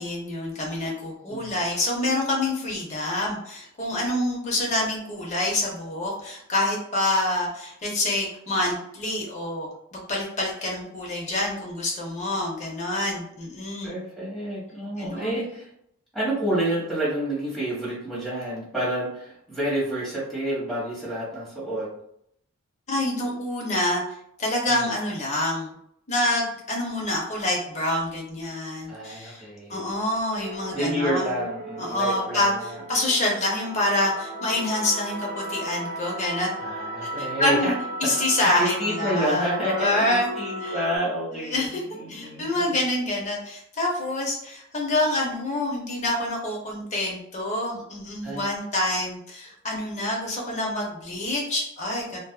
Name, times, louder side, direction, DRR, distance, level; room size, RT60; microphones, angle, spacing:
voice 1, 0.0-13.9 15.0-15.3 22.9-24.0 24.4-25.7 26.1-29.4 29.7-31.4 31.8-36.5 37.2-37.7 38.0-40.3 40.6-40.8 41.5-41.8 42.1-52.2, left 1 dB, 30° left, -1 dB, 0.6 m, -27 dB
voice 2, 1.3-1.6 13.8-15.7 16.1-21.9 24.7-24.9 28.9-29.9 30.7-32.5 36.6-37.7 38.1-41.6 41.9-42.5 48.2-48.4, right 1 dB, ahead, -9 dB, 1.2 m, -29 dB
sound 1, 30.4-41.0, equal, 40° right, 0.4 m, -35 dB
2.5 x 2.3 x 2.2 m, 0.74 s
head